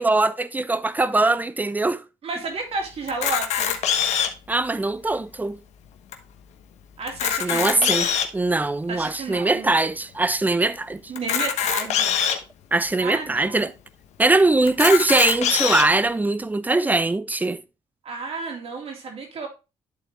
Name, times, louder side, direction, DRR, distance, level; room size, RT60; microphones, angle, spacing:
voice 1, 0.0-2.0 4.5-5.6 7.4-11.0 12.7-13.7 14.2-17.6, right 2 dB, 15° right, 0.6 m, -21 dB
voice 2, 2.2-3.7 7.0-7.9 8.9-9.7 11.1-12.2 13.0-13.7 18.0-19.5, right 3 dB, 60° right, 3.1 m, -32 dB
Camera, 3.1-4.5 5.1-5.2 5.4-5.6 6.1-6.2 7.0-8.4 9.0-9.1 11.1-12.4 13.1-13.2 13.5-13.6 14.7-15.8, left 8 dB, 80° left, 1.1 m, -23 dB
11.5 x 4.1 x 3.2 m
cardioid pair, 90°, 11 cm